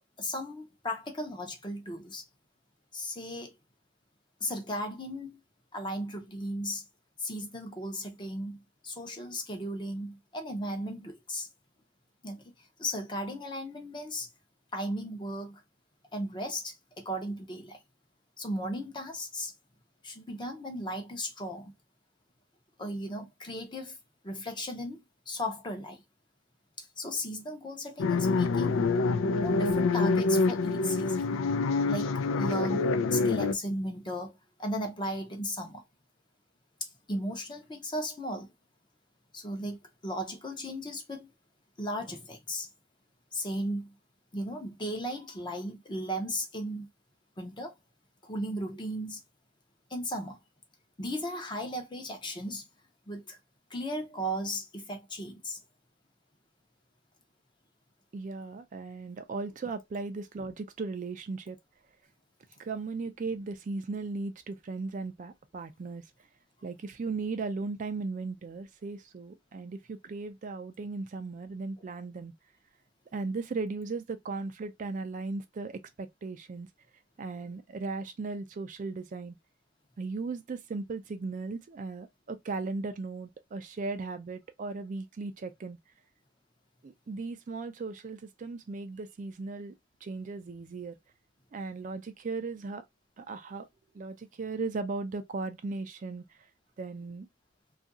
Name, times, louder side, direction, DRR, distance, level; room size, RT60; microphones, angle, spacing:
voice 1, 0.2-2.2 2.9-3.6 4.4-5.4 5.7-6.8 7.2-11.5 12.2-12.4 12.8-14.3 14.7-15.6 16.1-17.8 18.4-19.5 20.0-21.7 22.8-24.0 24.2-26.0 26.8-28.9 29.3-31.4 31.9-35.8 36.8-38.5 39.3-41.3 41.8-42.7 43.3-43.9 44.3-46.9 47.4-47.7 48.2-49.2 49.9-50.4 51.0-52.6 53.1-53.4 53.7-55.6, equal, 25° left, 0.7 m, -36 dB
sound 1, 28.0-33.5, left 3 dB, 90° left, 0.4 m, -26 dB
voice 2, 58.1-61.6 62.6-66.0 66.6-72.3 73.1-76.7 77.2-79.4 80.0-85.8 86.8-89.7 90.0-91.0 91.5-92.8 93.2-93.7 93.9-96.4 96.8-97.3, right 3 dB, 40° right, 0.4 m, -37 dB
2.7 x 2.4 x 2.5 m
head